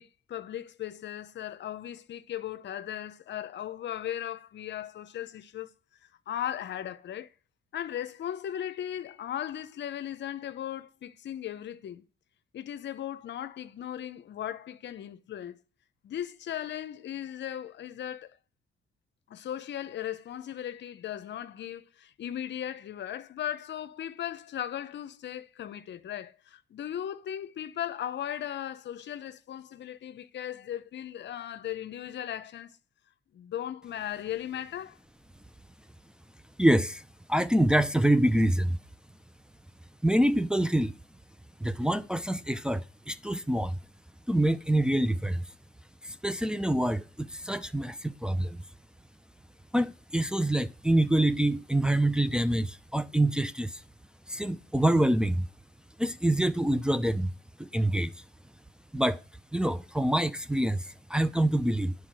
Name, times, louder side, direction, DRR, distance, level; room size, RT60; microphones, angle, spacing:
voice 1, 0.0-5.7 6.3-7.3 7.7-12.0 12.5-15.6 16.0-18.3 19.3-32.8 33.3-35.0, left 11 dB, 65° left, 0.8 m, -37 dB
voice 2, 36.6-37.0 37.3-38.8 40.0-41.0 41.6-43.8 44.3-45.4 46.0-48.6 49.7-53.8 54.3-55.5 56.0-57.3 57.6-58.1 58.9-59.2 59.5-61.9, right 1 dB, 5° right, 0.6 m, -26 dB
10.0 x 4.8 x 7.5 m
cardioid pair, 90°, 20 cm